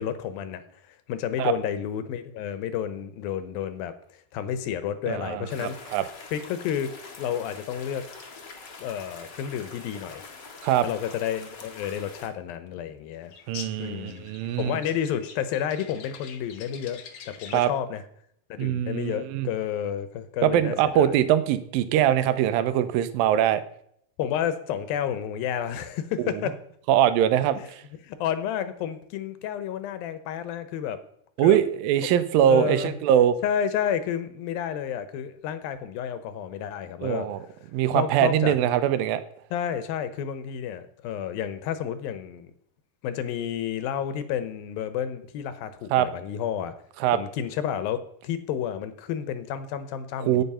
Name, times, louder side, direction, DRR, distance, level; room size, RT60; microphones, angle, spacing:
voice 1, 0.0-5.8 6.3-8.1 8.8-10.2 10.8-13.3 13.8-14.3 14.6-17.0 17.3-18.0 18.5-21.2 24.2-26.6 27.5-27.7 28.0-31.0 31.4-31.6 32.5-32.9 33.4-37.3 37.9-38.6 39.5-42.5 43.0-46.7 47.1-50.4, left 9 dB, 80° left, 12 dB, 2.8 m, -31 dB
voice 2, 5.1-6.0 10.6-10.9 13.5-14.8 17.5-17.7 18.6-19.5 20.4-23.6 26.2-26.4 26.9-27.8 31.4-33.4 37.0-37.4 37.7-39.2 45.9-46.1 47.0-47.2 50.2-50.4, right 11 dB, 80° right, 12 dB, 2.6 m, -22 dB
sound 1, 5.5-12.3, left 4 dB, 45° left, 1.5 m, -44 dB
sound 2, 13.3-17.8, left 7 dB, 65° left, 2.1 m, -45 dB
10.5 x 9.1 x 5.6 m, 0.69 s
omnidirectional pair, 4.2 m